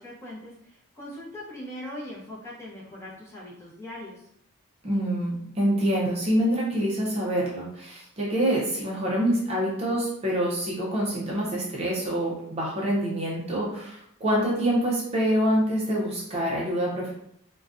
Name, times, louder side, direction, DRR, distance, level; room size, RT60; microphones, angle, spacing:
voice 1, 0.0-4.3, left 1 dB, 10° left, -7 dB, 0.7 m, -40 dB
voice 2, 4.8-17.1, equal, 30° right, -4 dB, 0.5 m, -26 dB
2.4 x 2.1 x 2.4 m, 0.74 s
head